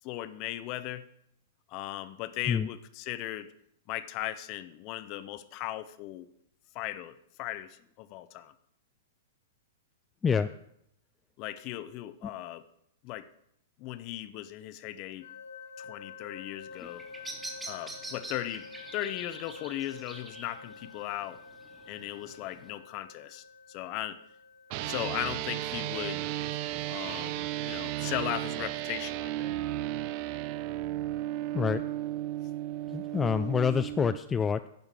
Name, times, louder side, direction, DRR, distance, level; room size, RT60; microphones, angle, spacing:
voice 1, 0.0-1.1 1.7-3.5 3.9-6.3 6.7-8.5 11.4-12.6 13.0-13.3 13.8-15.3 15.8-17.1 17.7-18.7 18.9-21.4 21.9-24.2 24.8-26.6 26.8-29.6, left 14 dB, 40° left, 14 dB, 0.7 m, -37 dB
sound 1, 15.2-30.1, left 5 dB, 65° left, 1.4 m, -50 dB
Bird vocalization bird call bird song, 16.7-22.7, right 2 dB, 10° right, 1.6 m, -46 dB
sound 2, 24.7-34.2, right 14 dB, 45° right, 0.5 m, -34 dB
voice 2, 32.9-34.7, left 6 dB, 15° left, 10 dB, 0.3 m, -27 dB
11.0 x 5.2 x 7.4 m, 0.74 s
hypercardioid pair, 115°, 0 cm